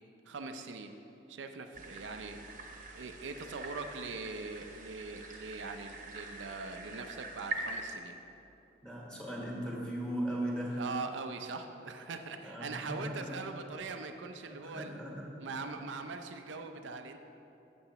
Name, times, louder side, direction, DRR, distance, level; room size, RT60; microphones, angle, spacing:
voice 1, 0.3-0.9 1.3-2.4 2.9-8.2 10.8-15.0 15.4-17.2, right 4 dB, 90° right, 6 dB, 0.5 m, -42 dB
sound 1, 1.7-7.9, right 2 dB, 45° right, 0.9 m, -44 dB
voice 2, 8.8-10.9 12.4-13.4 14.4-15.3 15.6-15.8, right 1 dB, 5° left, -4 dB, 1.3 m, -38 dB
12.5 x 7.7 x 3.0 m, 2.9 s
head